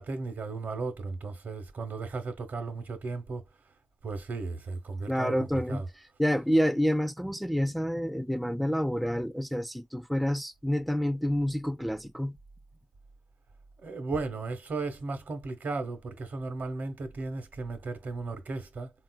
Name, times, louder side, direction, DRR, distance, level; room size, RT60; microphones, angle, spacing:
voice 1, 0.0-3.4 4.0-5.9 13.8-18.9, right 3 dB, 65° right, 0.7 m, -35 dB
voice 2, 5.1-12.4, equal, ahead, 0.3 m, -28 dB
3.7 x 2.3 x 2.2 m
supercardioid pair, 45°, 3 cm